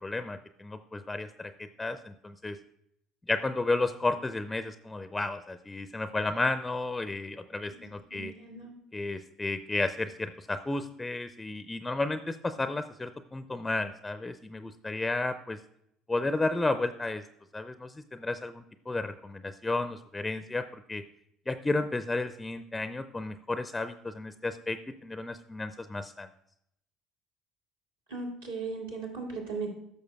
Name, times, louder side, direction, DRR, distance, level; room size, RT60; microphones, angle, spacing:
voice 1, 0.0-2.6 3.3-8.3 8.9-15.6 16.1-17.2 17.5-21.0 21.5-26.3, left 2 dB, 15° left, 11 dB, 0.4 m, -32 dB
voice 2, 8.1-8.7 28.1-29.7, right 4 dB, 80° right, -3 dB, 2.3 m, -37 dB
13.5 x 6.4 x 2.3 m, 0.77 s
figure-of-eight pair, 60°, 0 cm